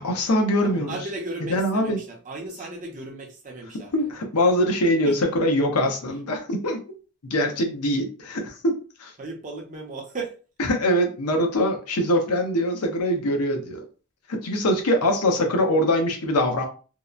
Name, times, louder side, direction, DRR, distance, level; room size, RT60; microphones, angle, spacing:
voice 1, 0.0-1.0 1.5-2.0 3.9-6.8 7.2-9.1 10.7-13.8 14.3-16.7, left 1 dB, 85° left, 3 dB, 0.7 m, -23 dB
voice 2, 0.6-4.1 5.0-5.1 9.2-10.3 15.3-15.6, right 2 dB, 35° right, 1 dB, 0.6 m, -36 dB
2.8 x 2.0 x 2.3 m, 0.36 s
head